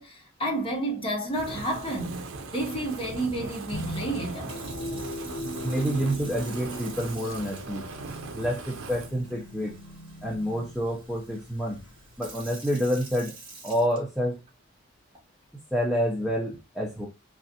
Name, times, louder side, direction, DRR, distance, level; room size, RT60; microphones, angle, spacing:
voice 1, 0.0-4.5, right 1 dB, 25° left, 1.0 m, -31 dB
Fire, 1.3-9.1, right 4 dB, 75° right, 0.6 m, -39 dB
sound 1, 3.7-12.5, left 1 dB, 60° left, 0.6 m, -40 dB
Sink (filling or washing) / Fill (with liquid), 4.3-14.5 15.1-15.4, right 3 dB, 25° right, 1.0 m, -48 dB
voice 2, 5.6-7.8 8.3-9.7 10.2-11.8 12.2-13.3 13.6-14.4 15.7-17.1, equal, ahead, 0.5 m, -28 dB
3.2 x 2.5 x 2.6 m
head